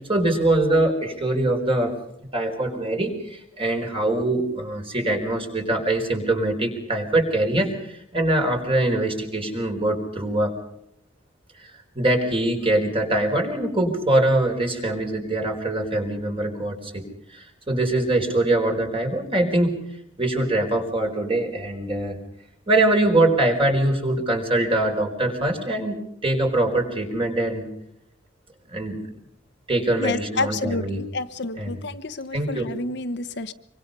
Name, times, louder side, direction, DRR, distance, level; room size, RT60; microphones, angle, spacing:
voice 1, 0.1-1.9 2.3-10.5 11.9-17.0 17.3-19.8 20.2-22.2 22.7-27.7 28.7-29.0 29.7-31.0 31.6-31.8 32.3-32.7, right 1 dB, 30° right, 3 dB, 4.6 m, -23 dB
voice 2, 30.0-33.5, left 3 dB, 65° left, 10 dB, 1.2 m, -29 dB
25.5 x 24.5 x 5.5 m, 0.77 s
head